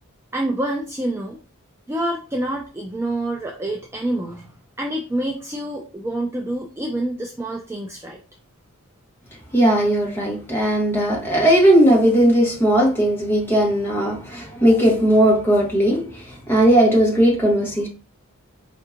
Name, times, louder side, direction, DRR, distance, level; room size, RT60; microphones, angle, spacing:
voice 1, 0.3-1.4 1.9-4.5 4.8-8.2, right 1 dB, 10° right, 0.3 m, -27 dB
voice 2, 9.5-17.9, right 1 dB, 10° left, 1.1 m, -17 dB
4.5 x 2.7 x 2.4 m
head